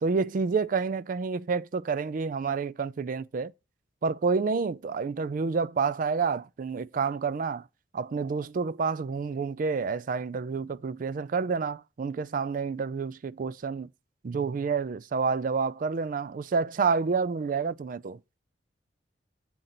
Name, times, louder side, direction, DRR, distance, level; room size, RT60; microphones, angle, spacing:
voice 1, 0.0-3.5 4.0-7.6 7.9-13.9 14.2-18.2, right 5 dB, 45° right, 0.4 m, -29 dB
7.7 x 3.9 x 5.8 m
head